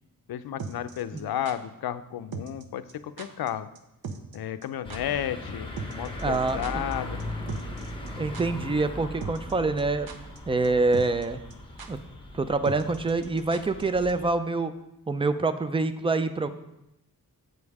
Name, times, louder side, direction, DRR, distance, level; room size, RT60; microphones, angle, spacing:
voice 1, 0.3-3.7 4.3-7.7, left 10 dB, 85° left, 12 dB, 0.5 m, -33 dB
sound 1, 0.6-1.6 2.3-2.6 2.9-3.0 3.2-3.5 3.7-3.8 4.0-4.4 4.6-4.7 4.9-5.0 5.8-6.9 7.2-7.3 7.5-8.1 8.3-8.4 9.2-9.5 9.8-10.4 10.6-10.7 10.9-11.2 11.5-11.6 11.8-11.9 12.6-13.8 14.1-14.2, right 5 dB, 80° right, 0.8 m, -38 dB
sound 2, 4.8-14.3, left 1 dB, 15° left, 0.9 m, -39 dB
voice 2, 6.2-6.6 8.2-10.1 10.5-11.4 11.9-12.0 12.3-14.7 15.1-16.5, right 3 dB, 15° right, 10 dB, 0.3 m, -26 dB
7.8 x 5.3 x 4.7 m, 0.88 s
wide cardioid pair, 165°, 36 cm